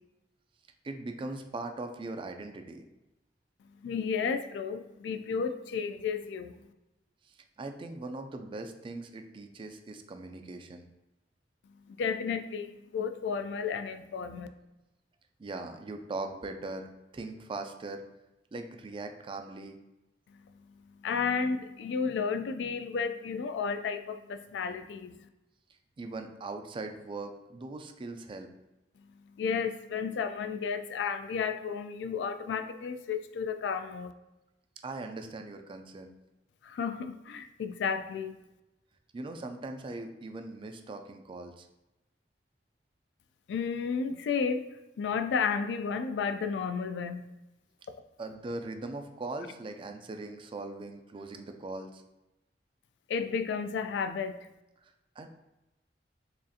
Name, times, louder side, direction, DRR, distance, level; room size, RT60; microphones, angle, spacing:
voice 1, 0.8-2.9 7.3-10.9 15.4-18.0 18.5-19.8 26.0-28.5 34.8-36.1 39.1-41.7 48.2-52.0 54.8-55.3, right 2 dB, 30° right, 6 dB, 0.3 m, -40 dB
voice 2, 3.8-6.5 11.9-14.5 21.0-25.2 29.4-34.1 36.6-38.4 43.5-44.6 45.0-47.3 53.1-54.4, left 6 dB, 70° left, 9 dB, 0.3 m, -32 dB
4.9 x 2.4 x 2.7 m, 0.96 s
head